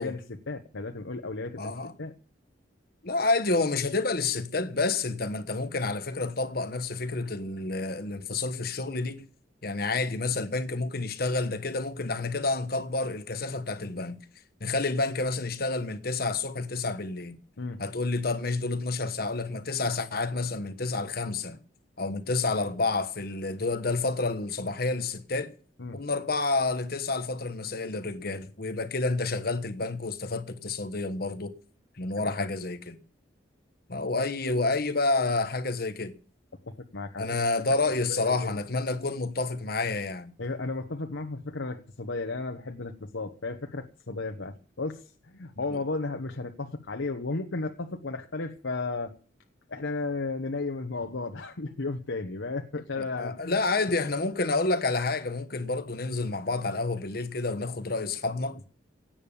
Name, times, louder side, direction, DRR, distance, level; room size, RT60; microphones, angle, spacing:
voice 1, 0.0-1.7 2.0-2.1 17.6-17.8 25.8-26.0 32.2-32.5 36.7-37.3 38.0-38.6 40.4-49.2 49.7-53.6, left 3 dB, 90° left, 1.1 m, -34 dB
voice 2, 1.6-1.9 3.0-9.2 9.6-14.2 14.6-17.4 17.8-21.6 22.0-25.5 25.9-31.5 32.0-33.0 33.9-36.1 37.2-40.3 52.9-58.6, left 3 dB, 55° left, 1.2 m, -29 dB
17.5 x 8.9 x 7.2 m
head